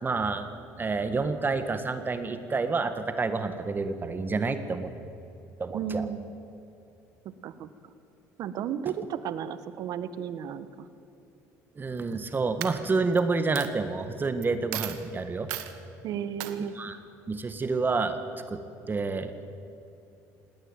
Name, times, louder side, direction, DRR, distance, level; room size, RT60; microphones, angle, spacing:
voice 1, 0.0-0.5 0.8-4.9 5.6-6.1 11.8-15.5 16.6-17.0 17.3-18.2 18.5-19.5, right 4 dB, 30° right, 9 dB, 1.7 m, -29 dB
voice 2, 5.7-6.3 7.4-7.7 8.4-10.7 16.0-16.7, right 8 dB, 65° right, 13 dB, 1.3 m, -33 dB
Coin (dropping), 12.0-12.3 12.6-13.2 13.6-13.7 14.4-14.5 14.7-15.0 15.5-15.7 16.4-16.5, right 16 dB, 85° right, 1.4 m, -35 dB
19.0 x 18.5 x 9.1 m, 2.7 s
supercardioid pair, 85°, 7 cm